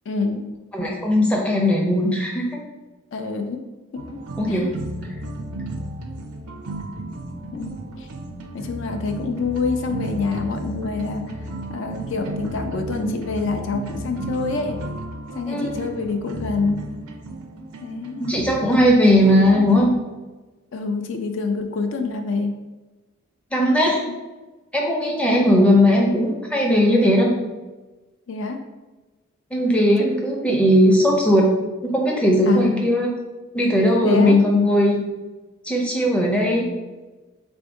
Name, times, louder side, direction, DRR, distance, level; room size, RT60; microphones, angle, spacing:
voice 1, 0.1-0.5 3.1-3.6 3.9-4.1 4.5-4.7 7.5-8.1 8.5-14.8 15.3-16.9 17.8-18.2 20.7-22.5 23.9-24.1 28.3-28.6 32.5-32.8 34.0-34.4, left 4 dB, 60° left, 6 dB, 0.3 m, -26 dB
voice 2, 0.7-2.5 4.4-4.8 15.5-15.8 18.3-19.9 23.5-24.0 24.7-27.3 29.5-31.5 31.8-33.1 33.5-35.0 35.6-36.7, equal, 5° left, -1 dB, 0.5 m, -18 dB
sound 1, 4.0-19.9, right 1 dB, 90° right, 0.5 m, -33 dB
3.4 x 2.6 x 4.5 m, 1.2 s
head